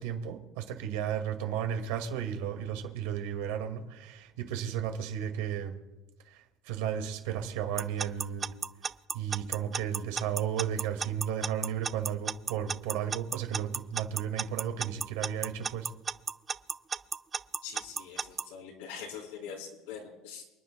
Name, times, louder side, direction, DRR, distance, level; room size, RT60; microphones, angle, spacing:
voice 1, 0.0-5.8 6.3-8.5 9.1-15.9, right 9 dB, 85° right, 5 dB, 2.1 m, -34 dB
Alarm / Clock, 7.8-18.4, right 5 dB, 20° right, 0.3 m, -33 dB
voice 2, 17.6-20.4, left 7 dB, 90° left, 0 dB, 3.9 m, -43 dB
28.5 x 10.5 x 2.3 m, 1.1 s
cardioid pair, 145°, 0 cm